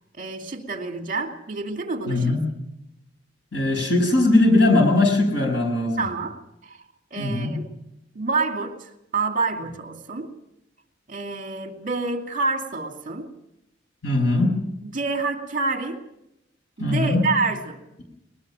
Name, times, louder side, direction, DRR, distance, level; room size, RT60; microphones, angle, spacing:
voice 1, 0.1-2.3 6.0-6.8 7.1-7.7 8.1-10.3 11.1-13.3 14.8-16.0 16.8-17.8, right 3 dB, 45° right, 4 dB, 2.6 m, -28 dB
voice 2, 2.1-2.4 3.5-6.0 7.2-7.5 14.0-14.6 16.8-17.2, left 2 dB, 80° left, 3 dB, 6.9 m, -20 dB
21.5 x 20.5 x 6.3 m, 0.83 s
head